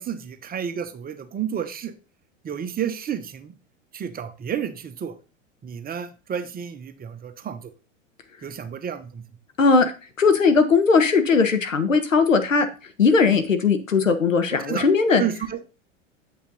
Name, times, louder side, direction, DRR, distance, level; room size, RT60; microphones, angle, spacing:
voice 1, 0.0-1.9 2.4-3.5 3.9-5.1 5.6-7.7 8.4-9.2 13.2-13.4 14.6-14.8 15.2-15.6, right 8 dB, 25° right, 8 dB, 1.0 m, -31 dB
voice 2, 9.6-9.9 10.2-12.7 13.0-15.2, left 4 dB, 90° left, 8 dB, 1.3 m, -18 dB
8.5 x 5.8 x 4.0 m, 0.33 s
hypercardioid pair, 90°, 38 cm